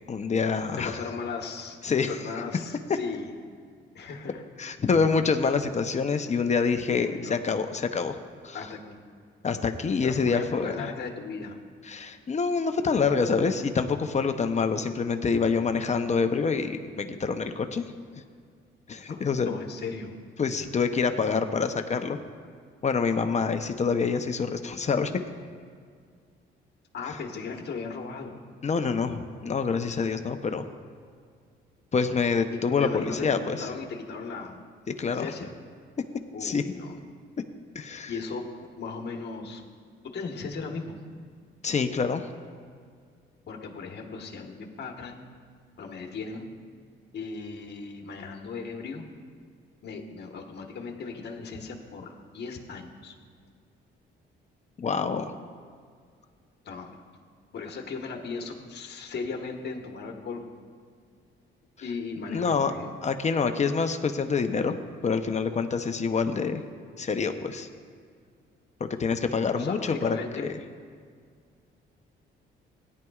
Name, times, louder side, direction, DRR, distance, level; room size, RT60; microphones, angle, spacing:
voice 1, 0.1-1.0 1.8-2.1 4.6-8.2 8.4-8.6 9.4-10.9 11.9-17.9 18.9-19.6 20.4-22.2 22.8-25.2 28.6-30.7 31.9-33.7 34.9-35.3 36.4-36.6 37.7-38.1 41.6-42.3 54.8-55.3 62.3-62.7 63.0-64.8 65.0-66.6 67.0-67.7 68.8-70.5, left 5 dB, 35° left, 7 dB, 0.7 m, -26 dB
voice 2, 0.8-3.3 3.9-4.4 6.9-7.4 8.5-9.0 10.0-11.6 19.1-20.1 26.9-28.4 32.5-34.6 35.0-35.5 36.3-37.0 38.1-38.4 38.8-39.6 40.1-41.0 43.5-45.2 45.8-46.5 47.1-49.0 49.8-53.1 56.6-57.0 57.5-60.5 61.8-62.9 69.5-70.5, left 4 dB, 55° left, 2 dB, 1.4 m, -37 dB
17.0 x 10.5 x 2.4 m, 2.1 s
cardioid pair, 90°, 20 cm